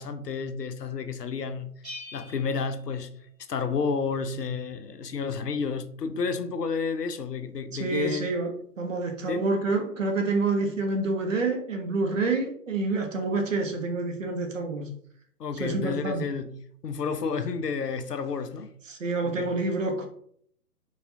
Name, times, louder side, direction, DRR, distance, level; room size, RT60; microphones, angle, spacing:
voice 1, 0.0-1.7 2.1-3.1 3.5-8.3 9.3-9.5 15.4-16.5 16.8-18.7 19.2-19.6, left 5 dB, 75° left, 0.6 m, -31 dB
Bell, 1.8-3.7, left 2 dB, ahead, 0.7 m, -45 dB
voice 2, 7.7-14.9 15.6-16.2 18.9-20.1, right 3 dB, 50° right, 0.9 m, -28 dB
4.7 x 2.5 x 2.7 m
figure-of-eight pair, 135°, 48 cm